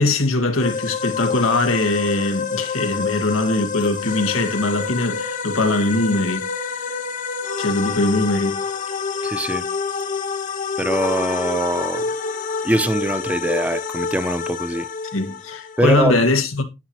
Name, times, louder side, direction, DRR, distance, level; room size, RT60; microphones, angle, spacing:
voice 1, 0.0-6.9 7.6-8.6 15.1-16.6, left 2 dB, 90° left, 2.0 m, -21 dB
sound 1, 0.6-16.0, left 5 dB, 40° left, 1.0 m, -27 dB
voice 2, 9.2-9.7 10.8-12.1 12.6-14.9 15.8-16.2, right 1 dB, 5° right, 0.6 m, -22 dB
9.8 x 9.5 x 3.0 m
head